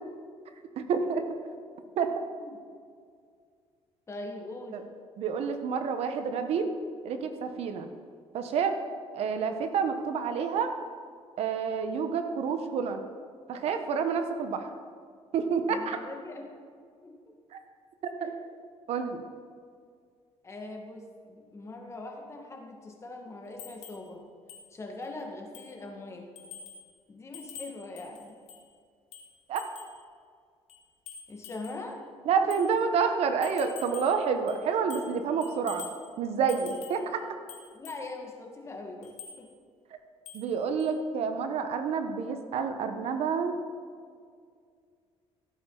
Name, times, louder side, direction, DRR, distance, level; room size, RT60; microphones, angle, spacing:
voice 1, 0.8-1.2 2.0-2.1 4.7-4.8 5.2-6.7 7.0-7.9 8.3-8.8 9.1-10.7 11.4-13.0 13.5-14.7 15.3-16.0 17.5-17.6 18.2-18.3 18.9-19.2 29.5-29.7 32.3-35.9 36.2-37.2 40.3-43.5, right 6 dB, 65° right, 7 dB, 1.1 m, -28 dB
voice 2, 2.1-2.5 4.1-4.8 15.7-16.5 17.0-17.3 18.2-18.4 20.4-24.2 24.7-26.3 27.1-28.4 31.3-32.0 32.4-32.5 37.7-39.5, left 2 dB, 25° left, 1 dB, 1.9 m, -42 dB
sound 1, 23.6-24.1 24.5-24.7 25.0-25.1 25.5-25.8 26.4-26.9 27.3-28.7 29.1-30.0 30.7-31.8 32.5-32.7 33.4-34.2 34.5-35.2 35.4-36.0 36.5-37.1 37.5-38.0 39.0-39.4 40.3-40.5 40.8-40.9, left 6 dB, 90° left, 2.0 m, -46 dB
16.0 x 9.0 x 4.0 m, 2.1 s
cardioid pair, 125°, 11 cm